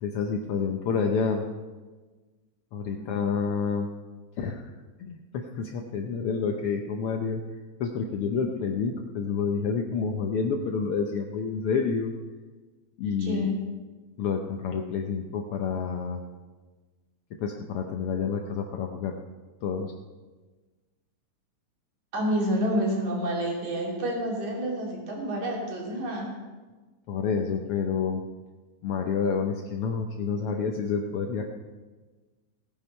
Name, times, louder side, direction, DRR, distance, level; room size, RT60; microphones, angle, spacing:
voice 1, 0.0-1.4 2.7-3.9 4.4-4.7 5.0-7.4 7.8-12.1 13.0-13.5 14.2-16.2 17.4-19.1 19.6-19.9 27.1-28.2 28.8-31.4, left 5 dB, 75° left, 3 dB, 1.3 m, -28 dB
voice 2, 13.2-13.6 22.1-26.3, equal, 70° right, -2 dB, 4.2 m, -29 dB
16.5 x 8.9 x 5.5 m, 1.3 s
omnidirectional pair, 3.5 m